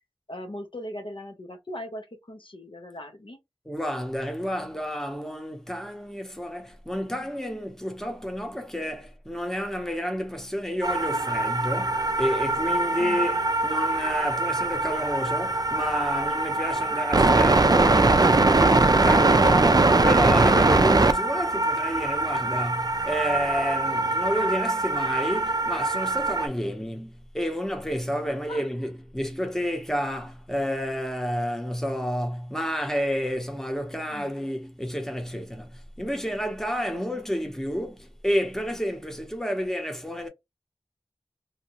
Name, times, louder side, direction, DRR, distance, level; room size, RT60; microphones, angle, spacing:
voice 1, 0.3-3.4 13.0-13.2 26.6-26.7 28.5-28.7 34.1-34.3, left 1 dB, 55° left, 0.6 m, -39 dB
voice 2, 3.6-40.3, equal, 5° left, 0.8 m, -30 dB
sound 1, 10.8-26.5, right 2 dB, 40° right, 0.4 m, -22 dB
2.7 x 2.2 x 2.8 m
wide cardioid pair, 45°, 10 cm